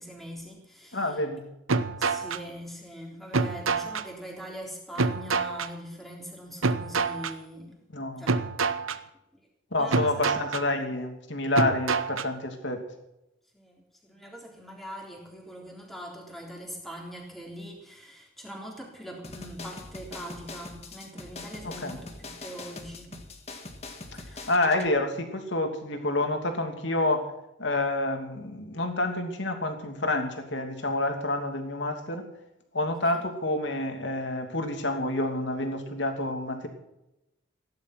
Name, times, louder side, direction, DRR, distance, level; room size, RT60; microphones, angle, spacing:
voice 1, 0.0-1.2 2.0-7.8 8.2-8.4 9.3-9.5 9.8-10.3 13.5-23.2 24.2-24.5 33.0-33.3, equal, ahead, -1 dB, 3.6 m, -42 dB
voice 2, 0.9-1.4 7.9-8.2 9.7-12.8 21.6-22.0 24.1-24.2 24.5-27.2 27.6-32.2 32.7-36.7, left 2 dB, 60° left, 4 dB, 2.8 m, -28 dB
sound 1, 1.7-2.4 3.3-4.0 5.0-5.7 6.6-7.3 8.3-9.0 9.9-10.6 11.5-12.3, right 4 dB, 85° right, 0.9 m, -27 dB
sound 2, 19.2-24.9, left 2 dB, 30° left, 1.7 m, -43 dB
16.5 x 11.5 x 5.9 m, 0.89 s
head